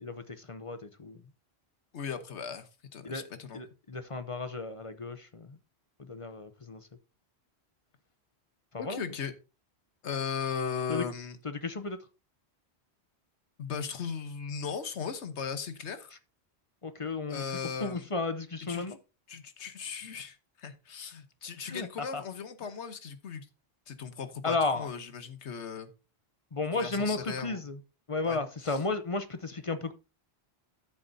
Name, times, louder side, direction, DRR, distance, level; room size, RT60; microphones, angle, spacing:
voice 1, 0.0-1.2 3.0-5.6 6.0-6.9 8.7-9.0 10.9-11.1 11.4-12.0 16.8-17.4 17.8-19.0 21.6-22.2 24.4-24.9 26.5-27.8 28.1-29.9, left 3 dB, 35° left, 0.7 m, -34 dB
voice 2, 1.9-3.6 8.8-9.3 10.0-11.4 13.6-16.1 17.3-18.1 18.7-18.9 19.3-23.5 23.9-25.9 26.7-27.6 28.2-28.8, left 6 dB, 90° left, 1.3 m, -37 dB
13.5 x 7.2 x 2.7 m
omnidirectional pair, 1.1 m